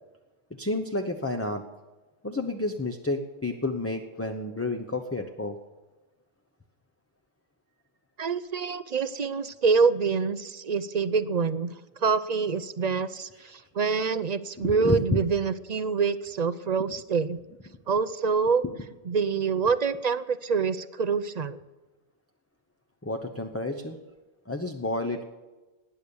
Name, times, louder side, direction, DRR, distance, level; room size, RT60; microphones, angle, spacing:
voice 1, 0.6-1.6 2.2-5.6 13.4-13.6 14.6-15.2 16.8-16.9 23.0-24.0 24.5-25.2, left 2 dB, 15° left, 4 dB, 0.8 m, -30 dB
voice 2, 8.2-11.7 12.0-17.4 17.9-18.6 19.1-21.6, right 5 dB, 45° right, 14 dB, 0.6 m, -26 dB
19.0 x 9.9 x 7.1 m, 1.2 s
omnidirectional pair, 1.1 m